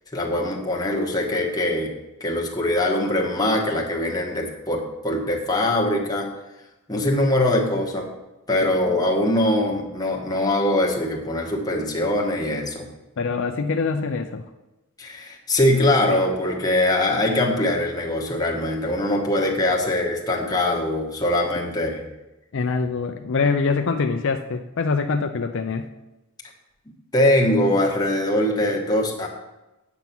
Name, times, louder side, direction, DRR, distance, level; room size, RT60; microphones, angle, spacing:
voice 1, 0.1-1.9 2.2-6.3 6.9-8.1 8.5-12.9 15.0-22.1 27.1-29.3, left 1 dB, 20° left, 0 dB, 1.5 m, -22 dB
voice 2, 13.2-14.4 22.5-25.8, left 4 dB, 60° left, 6 dB, 0.5 m, -24 dB
8.9 x 6.9 x 6.0 m, 1.0 s
head